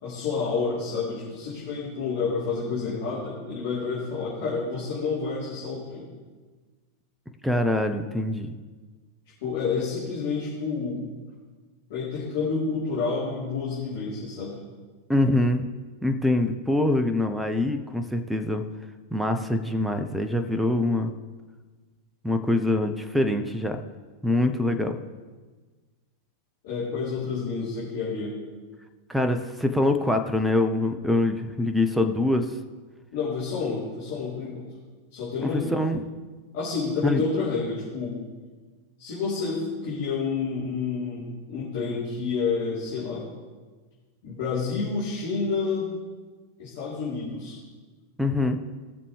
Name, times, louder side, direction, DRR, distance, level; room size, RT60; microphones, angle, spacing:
voice 1, 0.0-6.1 9.4-11.0 11.9-14.6 26.6-28.3 33.1-34.6 35.1-35.7 36.5-38.2 39.0-43.2 44.2-45.9 46.6-47.6, left 4 dB, 55° left, -9 dB, 3.7 m, -29 dB
voice 2, 7.4-8.5 15.1-15.7 16.0-18.6 19.1-21.1 22.2-23.8 24.2-25.0 29.1-32.5 35.4-36.0 37.0-37.2 48.2-48.6, left 1 dB, 5° right, 7 dB, 0.8 m, -24 dB
19.5 x 6.9 x 3.4 m, 1.4 s
figure-of-eight pair, 90°, 0 cm